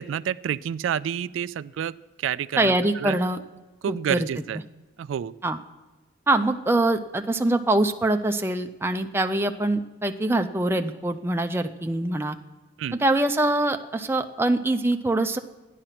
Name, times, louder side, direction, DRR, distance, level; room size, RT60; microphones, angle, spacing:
voice 1, 0.0-3.2 3.8-4.6 5.0-5.3 12.8-13.0, right 9 dB, 85° right, 16 dB, 0.3 m, -29 dB
voice 2, 2.6-3.4 3.9-4.3 5.4-5.6 6.3-12.4 13.0-15.4, right 2 dB, 10° right, 6 dB, 0.5 m, -24 dB
13.0 x 10.0 x 5.8 m, 1.2 s
head